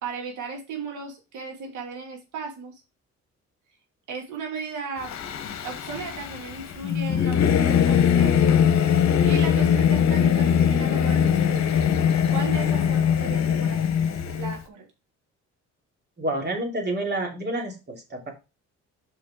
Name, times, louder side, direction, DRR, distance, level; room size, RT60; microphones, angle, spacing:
voice 1, 0.0-2.8 4.1-5.1 5.6-8.5 8.9-11.7 12.3-13.9 14.4-14.9, right 5 dB, 80° right, 1 dB, 2.7 m, -36 dB
Singing / Musical instrument, 5.0-14.6, left 8 dB, 60° left, 1.1 m, -21 dB
voice 2, 16.2-18.3, right 1 dB, 35° right, 1 dB, 3.0 m, -29 dB
5.6 x 5.4 x 4.8 m, 0.28 s
cardioid pair, 90°, 30 cm